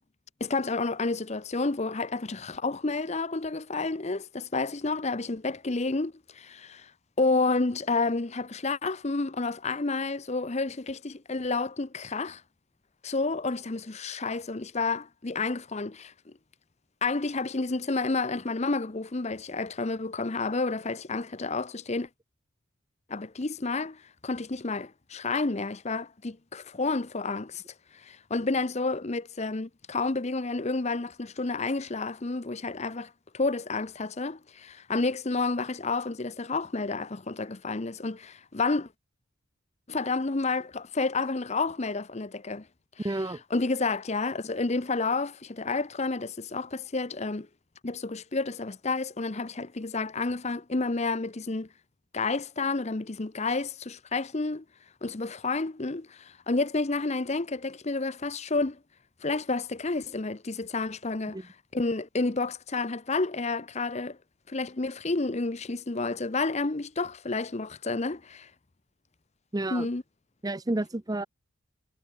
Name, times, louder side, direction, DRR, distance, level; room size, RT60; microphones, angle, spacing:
voice 1, 0.4-6.9 7.2-12.4 13.0-16.1 17.0-22.1 23.1-27.6 27.9-38.9 39.9-42.7 43.0-43.1 43.5-47.5 47.8-51.7 52.1-54.6 55.0-58.8 59.2-64.2 64.5-68.5 69.7-70.0, left 3 dB, 30° left, 0.7 m, -30 dB
voice 2, 43.0-43.4 61.3-61.4 69.5-69.9 70.4-71.3, right 2 dB, 15° right, 0.6 m, -30 dB
head